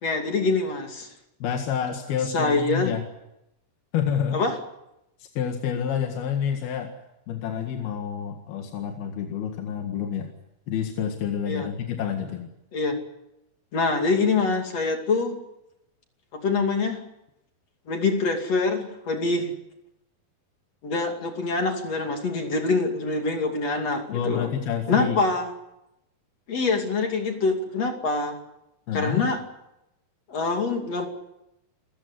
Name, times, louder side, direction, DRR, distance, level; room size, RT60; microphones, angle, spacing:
voice 1, 0.0-1.1 2.3-2.9 4.3-4.6 11.5-11.7 12.7-13.0 13.7-15.4 16.3-17.0 17.9-19.5 20.8-24.5 24.9-25.5 26.5-28.4 28.9-29.4 30.3-31.1, left 3 dB, 45° left, 4 dB, 3.4 m, -25 dB
voice 2, 1.4-3.0 3.9-4.4 5.2-6.9 7.3-10.3 10.7-12.5 24.1-25.2 28.9-29.3, left 8 dB, 80° left, 3 dB, 3.8 m, -28 dB
28.5 x 15.0 x 9.6 m, 0.88 s
omnidirectional pair, 4.4 m